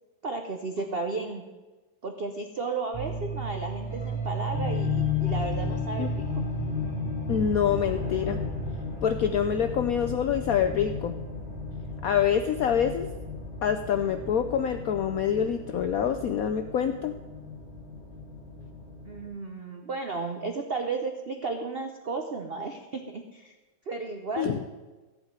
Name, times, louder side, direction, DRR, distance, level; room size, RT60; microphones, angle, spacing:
voice 1, 0.2-1.4 2.0-6.2 19.0-23.5 23.9-24.6, right 3 dB, 65° right, 4 dB, 0.5 m, -33 dB
Melancholy Guitar, 2.9-19.3, left 2 dB, 30° left, 2.8 m, -33 dB
voice 2, 7.3-8.4 9.0-11.1 12.0-13.1 13.6-17.1 24.4-24.6, left 8 dB, 75° left, 8 dB, 0.8 m, -26 dB
14.5 x 5.0 x 8.8 m, 1.2 s
omnidirectional pair, 2.1 m